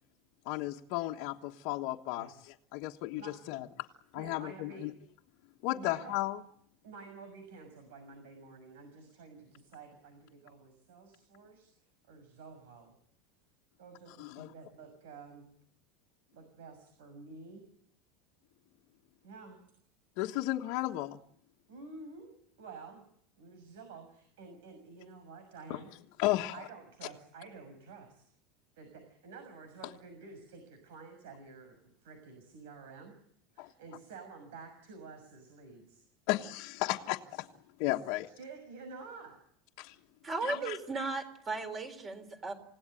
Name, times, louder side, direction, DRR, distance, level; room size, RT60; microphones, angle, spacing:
voice 1, 0.4-3.9 4.1-4.9 5.6-6.4 14.2-14.5 20.2-21.2 25.7-25.8 26.2-26.5 33.6-33.7 36.3-37.5 37.8-38.3 39.8-40.0 40.4-40.8, left 17 dB, 50° left, -1 dB, 1.4 m, -34 dB
voice 2, 3.2-3.6 4.1-4.9 5.7-6.2 6.8-11.7 12.1-13.0 13.8-15.5 16.3-17.7 19.2-19.6 21.7-23.1 23.4-25.9 26.5-28.2 28.7-33.2 33.5-36.0 38.4-39.4 40.4-40.7, right 4 dB, 85° right, 7 dB, 6.5 m, -50 dB
voice 3, 40.2-42.5, right 3 dB, 20° right, 8 dB, 3.9 m, -36 dB
28.5 x 17.5 x 9.1 m, 0.70 s
supercardioid pair, 170°, 0 cm